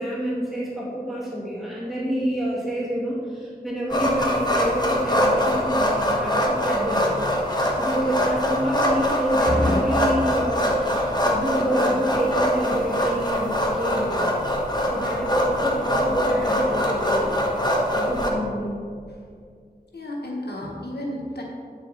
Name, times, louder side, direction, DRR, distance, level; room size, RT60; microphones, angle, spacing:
voice 1, 0.0-7.1 7.8-14.2 14.9-17.4 17.9-18.8, equal, ahead, -8 dB, 2.3 m, -27 dB
sound 1, 3.9-18.3, equal, 25° left, 1.3 m, -23 dB
voice 2, 9.4-10.2 19.1-19.3 19.9-21.4, left 1 dB, 90° left, -2 dB, 1.3 m, -29 dB
9.3 x 6.5 x 4.1 m, 2.1 s
wide cardioid pair, 55°, 16 cm